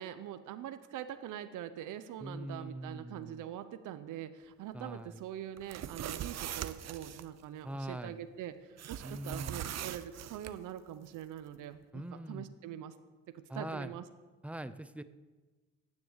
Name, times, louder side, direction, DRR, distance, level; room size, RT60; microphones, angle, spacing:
voice 1, 0.0-12.9 13.3-14.1, right 11 dB, 85° right, 11 dB, 0.9 m, -43 dB
voice 2, 2.2-3.4 4.7-5.2 7.6-8.2 9.0-9.6 11.9-12.5 13.5-13.9 14.4-15.0, right 1 dB, 5° right, 12 dB, 0.8 m, -42 dB
sound 1, 5.6-7.2 8.8-10.5, right 11 dB, 60° right, 0.8 m, -41 dB
14.0 x 9.7 x 8.1 m, 1.3 s
cardioid pair, 90°, 30 cm